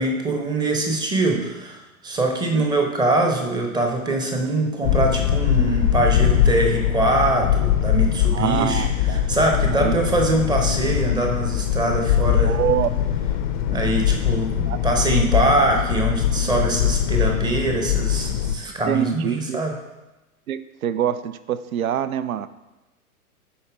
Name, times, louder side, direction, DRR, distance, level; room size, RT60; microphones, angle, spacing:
voice 1, 0.0-12.6 13.7-19.8, right 2 dB, 10° right, 2 dB, 0.7 m, -23 dB
sound 1, 4.8-18.5, left 10 dB, 35° left, 0.5 m, -22 dB
voice 2, 8.3-9.3 9.7-9.9 12.4-12.9 14.7-14.8 18.9-19.6 20.5-22.5, right 10 dB, 70° right, 14 dB, 0.5 m, -25 dB
11.0 x 4.3 x 3.4 m, 1.0 s
figure-of-eight pair, 105°, 44 cm